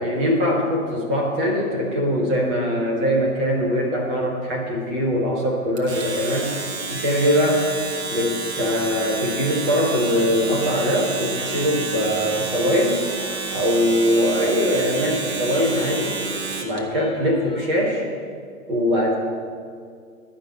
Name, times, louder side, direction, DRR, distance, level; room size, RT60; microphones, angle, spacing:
voice 1, 0.0-6.5 6.9-7.7 8.1-13.0 13.5-16.2 16.6-18.1 18.7-19.2, equal, 5° right, -2 dB, 0.4 m, -22 dB
Domestic sounds home sounds, 5.8-16.8, right 4 dB, 50° right, 1.5 m, -30 dB
sound 1, 11.3-17.7, left 4 dB, 15° left, 0.8 m, -41 dB
11.5 x 5.6 x 8.4 m, 2.1 s
figure-of-eight pair, 120°, 44 cm